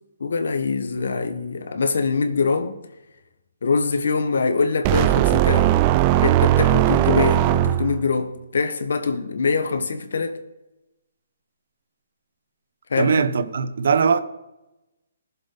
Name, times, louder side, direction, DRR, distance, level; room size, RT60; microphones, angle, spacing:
voice 1, 0.2-2.8 3.6-5.7 6.2-10.4 12.9-13.2, left 4 dB, 70° left, 1.5 m, -23 dB
sound 1, 4.8-8.1, right 13 dB, 30° right, 0.4 m, -18 dB
voice 2, 13.0-14.2, right 5 dB, 65° right, 0.9 m, -20 dB
19.5 x 7.3 x 4.0 m
hypercardioid pair, 145°, 0 cm